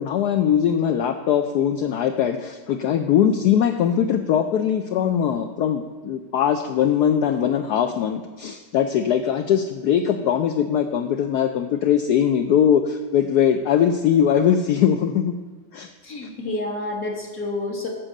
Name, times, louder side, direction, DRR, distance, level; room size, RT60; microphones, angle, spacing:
voice 1, 0.0-15.3 15.7-15.9, left 9 dB, 70° left, 6 dB, 1.0 m, -21 dB
voice 2, 16.0-17.9, left 2 dB, 50° left, -1 dB, 1.9 m, -29 dB
10.0 x 6.2 x 6.5 m, 1.3 s
omnidirectional pair, 2.0 m